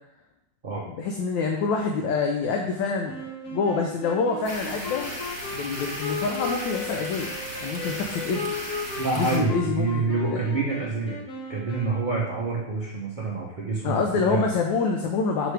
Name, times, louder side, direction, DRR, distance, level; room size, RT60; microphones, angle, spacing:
voice 1, 0.9-3.2 3.5-5.1 5.5-7.3 7.6-8.5 9.1-10.4 13.8-15.5, left 4 dB, 75° left, 2 dB, 1.3 m, -26 dB
Wind instrument woodwind instrument, 3.0-12.5, left 3 dB, 60° left, 1.0 m, -36 dB
sound 1, 4.4-9.4, equal, 20° left, 0.4 m, -36 dB
voice 2, 9.0-11.2 11.5-14.5, right 3 dB, 55° right, -5 dB, 0.5 m, -27 dB
6.2 x 4.7 x 3.3 m, 0.85 s
omnidirectional pair, 2.1 m